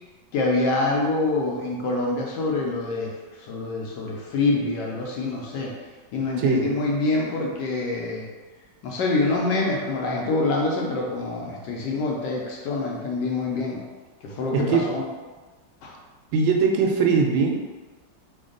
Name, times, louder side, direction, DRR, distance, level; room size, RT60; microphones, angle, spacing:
voice 1, 0.3-3.1 3.5-5.7 6.1-8.2 8.8-13.8 14.2-15.0 15.8-15.9, left 3 dB, 75° left, -1 dB, 1.1 m, -25 dB
voice 2, 6.4-6.7 14.5-14.9 16.3-17.6, right 5 dB, 90° right, 1 dB, 1.4 m, -21 dB
3.4 x 2.3 x 3.7 m, 1.3 s
omnidirectional pair, 2.1 m